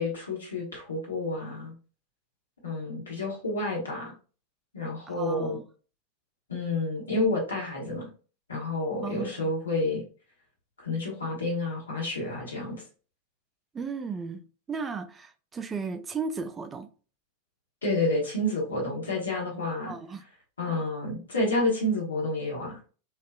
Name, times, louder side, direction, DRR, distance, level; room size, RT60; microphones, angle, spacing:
voice 1, 0.0-1.7 2.6-4.1 4.7-5.6 6.5-8.1 8.5-10.0 10.8-12.8 17.8-19.9 20.6-22.9, left 2 dB, 70° left, 1.1 m, -29 dB
voice 2, 5.1-5.6 9.0-9.5 13.7-14.4 14.7-16.9 19.9-20.2, right 5 dB, 20° right, 0.3 m, -35 dB
2.5 x 2.4 x 2.2 m
figure-of-eight pair, 90°, 0 cm